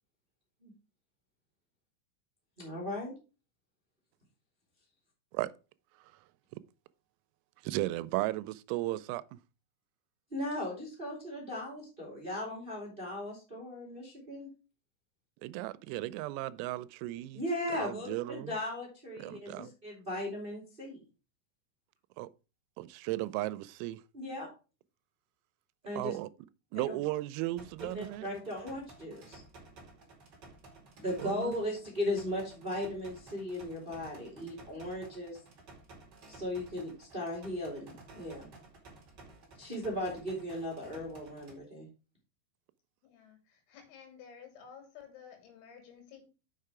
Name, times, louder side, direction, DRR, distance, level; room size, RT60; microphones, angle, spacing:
voice 1, 2.6-3.1 10.3-14.5 17.3-21.0 24.1-24.5 25.8-26.2 26.7-27.0 27.9-29.4 31.0-35.4 36.3-38.5 39.6-41.9, left 1 dB, 20° right, 1.3 m, -37 dB
voice 2, 7.6-9.4 15.4-17.4 17.7-18.5 19.2-19.7 22.2-22.3 22.8-24.0 26.0-26.3 26.7-28.3 31.2-31.6, right 17 dB, 85° right, 3.3 m, -35 dB
sound 1, 27.6-41.6, right 3 dB, 50° right, 1.3 m, -54 dB
voice 3, 43.0-46.2, left 7 dB, 85° left, 5.1 m, -53 dB
7.2 x 6.6 x 4.8 m
omnidirectional pair, 6.0 m